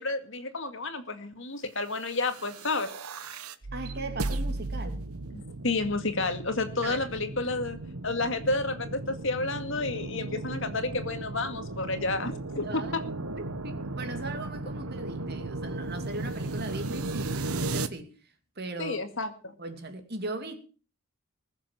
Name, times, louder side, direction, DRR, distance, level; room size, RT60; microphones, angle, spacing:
voice 1, 0.0-2.9 5.3-7.8 8.0-13.0 18.8-19.5, left 3 dB, 60° left, 2.1 m, -31 dB
sound 1, 2.1-17.9, right 2 dB, 85° right, 1.2 m, -36 dB
voice 2, 3.7-5.0 6.8-7.0 12.6-19.0 19.6-20.6, right 2 dB, 45° right, 2.5 m, -39 dB
21.0 x 7.2 x 7.3 m
head